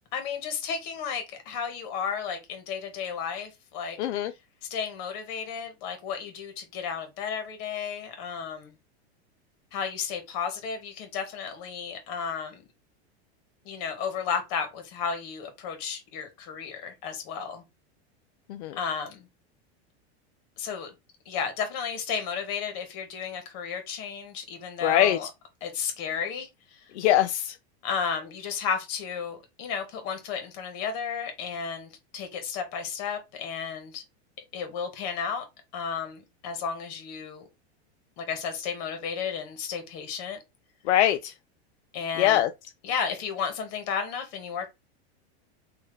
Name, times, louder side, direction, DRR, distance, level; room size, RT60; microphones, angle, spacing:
voice 1, 0.1-4.0 4.7-8.7 9.7-12.6 13.6-17.6 18.8-19.3 20.6-20.9 21.2-25.3 25.6-26.8 27.8-34.0 34.5-35.4 35.7-37.5 38.2-40.4 41.9-42.4 42.8-44.7, left 6 dB, 50° left, 1.5 m, -33 dB
voice 2, 4.0-4.3 18.5-18.8 24.8-25.2 27.0-27.5 40.9-41.3 42.2-42.5, left 12 dB, 85° left, 0.5 m, -22 dB
3.7 x 2.8 x 3.2 m
supercardioid pair, 140°, 33 cm